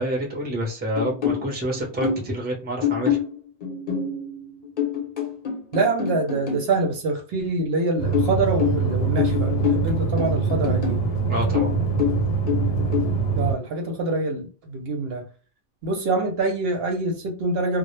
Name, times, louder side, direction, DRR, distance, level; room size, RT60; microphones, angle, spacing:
voice 1, 0.0-3.2 11.3-11.7, right 1 dB, 10° right, 0.5 m, -28 dB
sound 1, 1.0-2.4 2.8-6.7 8.1-11.1 11.5-13.1, left 8 dB, 50° left, 0.7 m, -27 dB
voice 2, 5.7-11.0 13.4-15.2 15.8-17.8, right 2 dB, 65° right, 0.7 m, -25 dB
sound 2, 8.0-13.5, right 5 dB, 75° left, 0.9 m, -24 dB
2.1 x 2.0 x 3.0 m
omnidirectional pair, 1.2 m